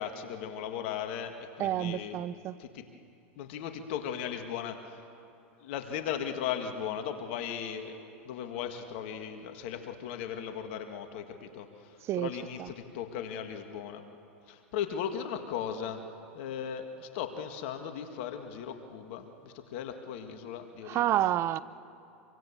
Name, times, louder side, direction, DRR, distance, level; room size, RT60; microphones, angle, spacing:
voice 1, 0.0-2.2 2.6-2.9 3.4-5.0 5.6-8.0 8.3-14.0 14.5-16.0 16.3-21.3, left 8 dB, 65° left, 1.9 m, -37 dB
voice 2, 1.6-2.6 12.1-12.3 12.6-12.7 20.9-21.6, right 13 dB, 40° right, 0.8 m, -29 dB
26.0 x 24.0 x 7.3 m
hypercardioid pair, 105°, 7 cm